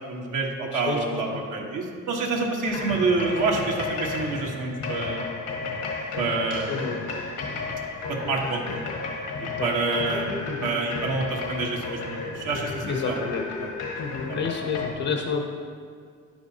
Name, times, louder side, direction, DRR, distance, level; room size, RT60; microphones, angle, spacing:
voice 1, 0.1-5.3 6.2-6.7 8.1-8.8 9.4-10.3 10.6-12.0 12.3-13.2 13.6-13.7 14.3-14.4, right 3 dB, 85° right, 0 dB, 1.3 m, -27 dB
voice 2, 0.7-1.4 6.7-7.0 9.6-10.0 10.5-10.7 12.9-13.4 14.0-15.4, left 5 dB, 65° left, 2 dB, 0.8 m, -30 dB
sound 1, 2.7-14.9, left 3 dB, 80° left, 1.4 m, -33 dB
9.6 x 8.3 x 2.8 m, 2.1 s
cardioid pair, 90°, 30 cm